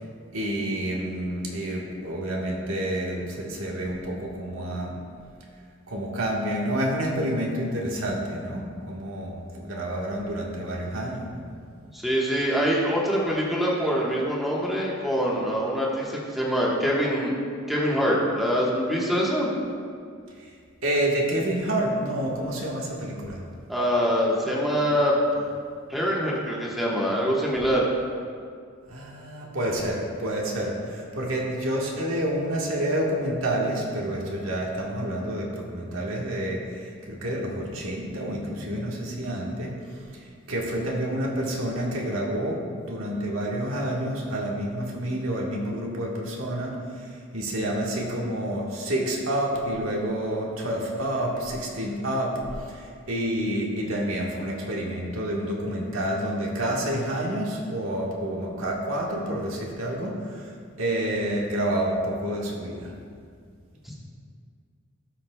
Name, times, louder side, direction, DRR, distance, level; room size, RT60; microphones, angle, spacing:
voice 1, 0.3-5.0 5.9-11.4 20.4-20.5 20.8-23.4 28.9-39.7 40.5-46.8 47.3-60.5 60.8-62.9, right 1 dB, 85° right, -2 dB, 1.5 m, -28 dB
voice 2, 11.9-17.3 17.7-19.5 23.7-25.4 25.9-27.9 38.6-38.7, equal, ahead, -5 dB, 1.3 m, -24 dB
17.0 x 6.1 x 2.3 m, 2.2 s
head